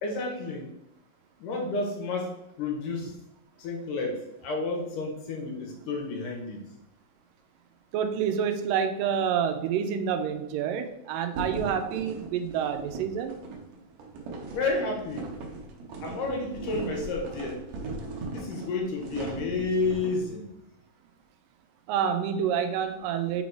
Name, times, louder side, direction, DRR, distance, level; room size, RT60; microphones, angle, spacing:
voice 1, 0.0-0.7 1.4-3.1 3.6-6.6 14.5-15.3 16.0-17.6 18.3-20.5, left 3 dB, 75° left, 1 dB, 2.7 m, -31 dB
voice 2, 7.9-13.3 21.9-23.4, right 8 dB, 90° right, 8 dB, 2.3 m, -28 dB
sound 1, 11.3-20.3, right 3 dB, 65° right, 2.0 m, -38 dB
5.8 x 4.1 x 4.6 m, 0.84 s
omnidirectional pair, 3.9 m